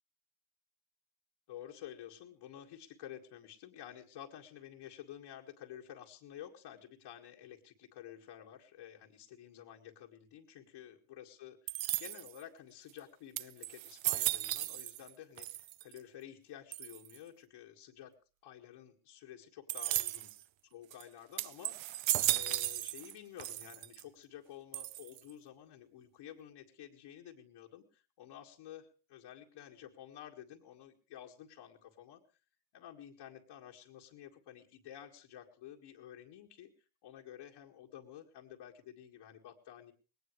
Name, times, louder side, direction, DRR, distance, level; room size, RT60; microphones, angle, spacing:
voice 1, 1.5-18.2 18.4-20.3 20.7-22.0 22.2-32.2 32.7-36.7 37.0-39.9, left 10 dB, 75° left, -1 dB, 2.1 m, -51 dB
sound 1, 11.7-12.4 13.0-13.1 13.4-15.1 15.4-16.0 16.7-17.2 19.7-20.4 20.9-21.0 21.4-23.1 23.4-24.0 24.7-25.3, right 15 dB, 65° right, 0.8 m, -35 dB
19.5 x 18.5 x 3.2 m, 0.33 s
cardioid pair, 105°, 49 cm